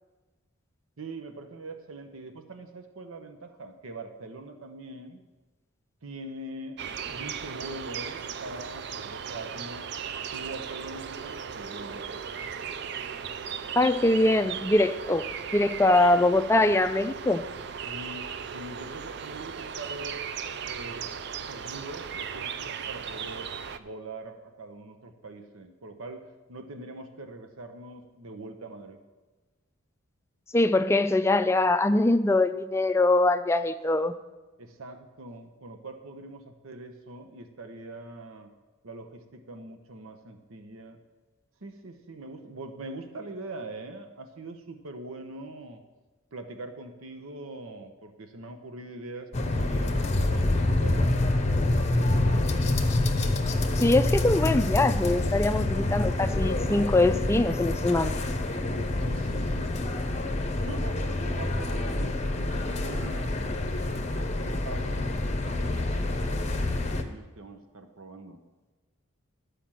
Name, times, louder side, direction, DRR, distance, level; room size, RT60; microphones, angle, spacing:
voice 1, 1.0-5.2 6.0-9.9 10.3-12.4 17.8-20.2 20.7-21.1 21.5-23.5 23.8-29.0 34.6-38.5 38.8-41.0 41.6-45.8 46.3-51.4 51.7-53.0 59.0-60.2 60.6-63.6 63.9-68.4, right 2 dB, 85° right, 6 dB, 0.9 m, -43 dB
sound 1, 6.8-23.8, right 7 dB, 55° right, 0.4 m, -37 dB
voice 2, 13.8-15.2 15.5-17.4 30.5-34.1 53.8-58.1, left 2 dB, 15° left, 9 dB, 0.3 m, -23 dB
sound 2, 49.3-67.0, left 2 dB, 30° left, 0.7 m, -27 dB
12.0 x 5.0 x 7.5 m, 1.2 s
head